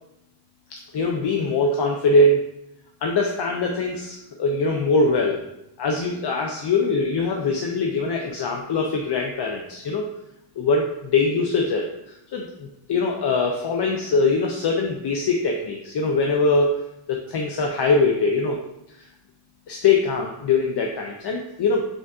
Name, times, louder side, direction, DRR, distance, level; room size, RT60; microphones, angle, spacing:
voice 1, 0.9-2.4 3.0-5.4 5.8-10.1 10.6-16.8 17.1-18.6 19.0-19.1 19.7-21.9, left 3 dB, 55° left, 1 dB, 0.5 m, -22 dB
5.1 x 2.4 x 3.5 m, 0.85 s
wide cardioid pair, 130°, 49 cm